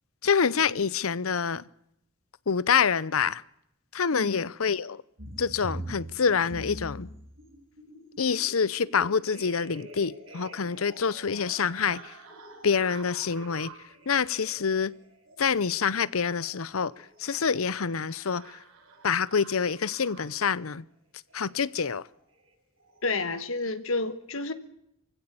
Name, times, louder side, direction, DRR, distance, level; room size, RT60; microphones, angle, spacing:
voice 1, 0.2-1.6 2.5-3.4 3.9-5.0 5.4-7.1 8.2-12.1 12.6-13.7 14.1-14.9 15.4-18.6 19.0-20.8 21.3-22.0, left 6 dB, 90° left, 0.8 m, -26 dB
sound 1, 5.2-20.6 21.3-21.6 21.8-22.1 22.3-22.5 22.8-23.0, right 1 dB, 70° right, 6.9 m, -46 dB
voice 2, 23.0-24.5, left 3 dB, 75° left, 1.6 m, -30 dB
24.5 x 16.0 x 8.5 m
head